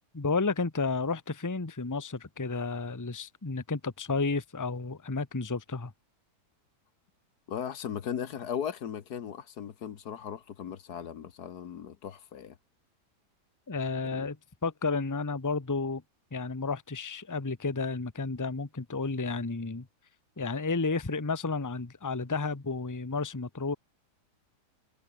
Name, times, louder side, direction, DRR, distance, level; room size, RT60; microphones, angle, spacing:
voice 1, 0.1-5.9 13.7-14.4 14.6-16.0 16.3-19.9 20.4-23.8, left 4 dB, 15° left, 1.0 m, -32 dB
voice 2, 7.5-12.6 14.1-14.3, left 8 dB, 70° left, 1.7 m, -37 dB
omnidirectional pair, 1.8 m